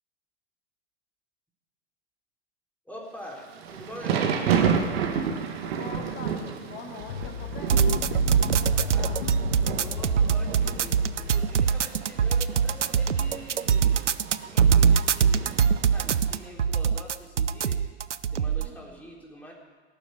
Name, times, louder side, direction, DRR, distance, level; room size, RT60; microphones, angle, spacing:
voice 1, 2.9-4.5 8.7-9.1 9.7-17.9 18.3-19.5, equal, 5° left, -2 dB, 3.9 m, -44 dB
Thunder / Rain, 3.3-16.4, right 7 dB, 60° right, 2.0 m, -32 dB
voice 2, 5.7-9.2 18.6-19.1, left 5 dB, 30° left, 3 dB, 2.5 m, -43 dB
sound 1, 7.0-11.7, left 7 dB, 60° left, 1.1 m, -35 dB
sound 2, 7.7-18.7, right 7 dB, 85° right, 0.6 m, -23 dB
18.0 x 7.2 x 9.4 m, 1.4 s
figure-of-eight pair, 100°, 35 cm